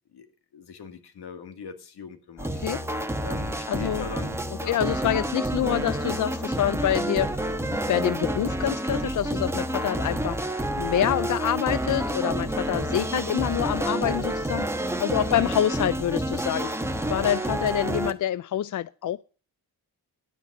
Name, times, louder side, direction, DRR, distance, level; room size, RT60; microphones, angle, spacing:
voice 1, 0.5-2.8 3.2-4.8 15.2-15.5, left 6 dB, 75° left, 2.0 m, -40 dB
sound 1, 2.4-18.1, right 1 dB, 5° right, 1.1 m, -29 dB
voice 2, 3.7-4.0 4.7-7.3 7.9-16.7 17.1-19.2, left 11 dB, 50° left, 0.4 m, -26 dB
11.0 x 9.4 x 5.3 m
cardioid pair, 110°, 39 cm